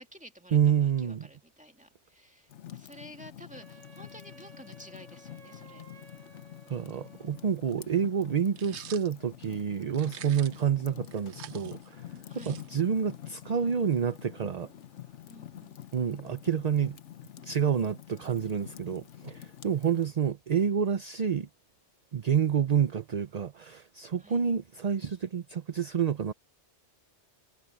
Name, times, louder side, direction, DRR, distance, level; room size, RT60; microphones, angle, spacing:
voice 1, 0.0-5.9 12.2-12.6 15.3-15.9 24.2-24.4, equal, 5° right, 2.2 m, -52 dB
voice 2, 0.5-1.3 6.7-12.1 12.5-14.7 15.9-17.0 17.4-21.5 22.1-26.3, right 7 dB, 45° right, 0.6 m, -28 dB
Fire, 2.5-20.1, left 11 dB, 80° left, 1.2 m, -47 dB
Wind instrument woodwind instrument, 3.5-7.6, right 2 dB, 85° right, 1.8 m, -55 dB
sound 1, 8.6-9.1 9.9-10.7 11.0-13.0, right 10 dB, 70° right, 0.9 m, -47 dB
omnidirectional pair, 1.2 m